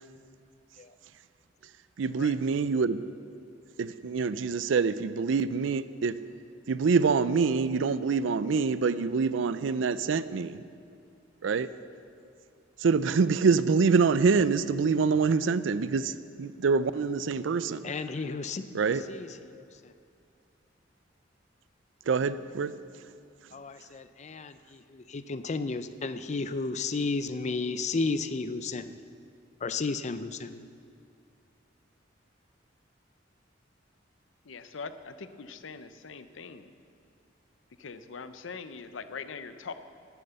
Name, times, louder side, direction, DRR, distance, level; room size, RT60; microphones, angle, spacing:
voice 1, 2.0-3.0 3.8-6.2 6.7-10.6 11.4-11.7 12.8-17.9 18.7-19.0 22.1-22.7, right 5 dB, 75° right, 15 dB, 0.4 m, -25 dB
voice 2, 17.8-18.6 19.1-19.3 23.5-29.0 29.6-30.7, left 3 dB, 40° left, 12 dB, 0.5 m, -33 dB
voice 3, 34.5-36.7 37.8-39.7, left 5 dB, 90° left, 11 dB, 0.6 m, -42 dB
11.0 x 9.4 x 6.9 m, 2.4 s
head